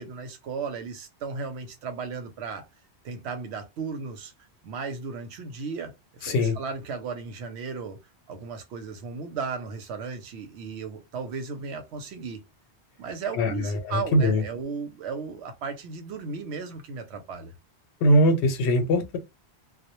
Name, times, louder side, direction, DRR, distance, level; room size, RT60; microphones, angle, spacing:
voice 1, 0.0-2.6 3.0-4.3 4.6-8.0 8.3-12.4 13.0-17.5, right 5 dB, 85° right, 0.9 m, -35 dB
voice 2, 13.4-14.4 18.0-19.2, equal, 85° left, 0.9 m, -21 dB
2.1 x 2.1 x 2.9 m
omnidirectional pair, 1.1 m